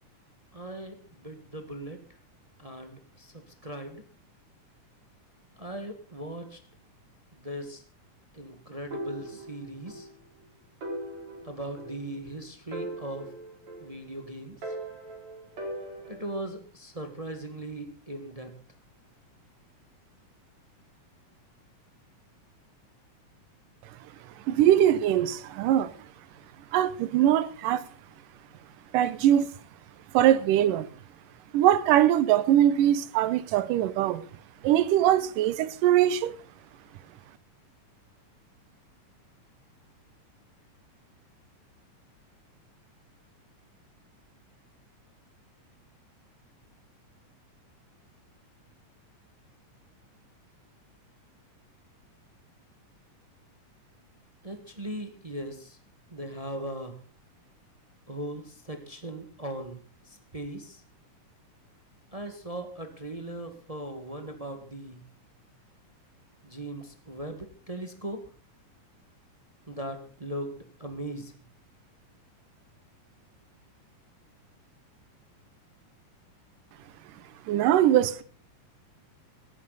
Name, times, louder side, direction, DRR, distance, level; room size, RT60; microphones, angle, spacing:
voice 1, 0.5-2.0 2.6-4.0 5.6-6.6 7.3-7.8 8.3-10.1 11.4-13.3 13.8-14.7 16.1-18.5 54.4-55.8 56.1-56.9 58.1-59.8 60.1-60.8 62.1-65.0 66.4-68.2 69.7-71.3, right 1 dB, 30° right, 0.7 m, -39 dB
sound 1, 8.9-10.1 10.4-10.5 10.8-12.3 12.7-14.2 14.6-16.5, right 1 dB, 55° right, 5.6 m, -39 dB
voice 2, 24.5-25.9 26.7-27.8 28.9-29.5 30.1-30.9 31.5-34.2 34.6-36.4 77.5-78.2, right 11 dB, 85° right, 2.4 m, -22 dB
17.5 x 14.5 x 4.0 m
omnidirectional pair, 3.8 m